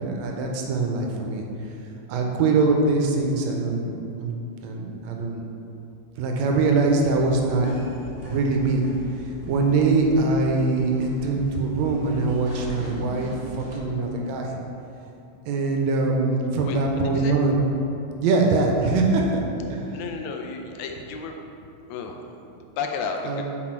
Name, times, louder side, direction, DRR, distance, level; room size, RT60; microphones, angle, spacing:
voice 1, 0.0-1.5 2.1-3.9 4.2-5.5 6.2-7.7 8.2-8.9 9.5-14.5 15.5-17.6 18.2-19.2 19.7-19.8 23.3-23.4, right 3 dB, 80° right, 1 dB, 1.8 m, -23 dB
sound 1, 7.0-13.8, left 1 dB, 25° right, 0.7 m, -40 dB
voice 2, 19.9-21.4 21.9-23.4, left 5 dB, 80° left, 3 dB, 1.8 m, -33 dB
6.0 x 4.1 x 4.4 m, 2.8 s
omnidirectional pair, 3.3 m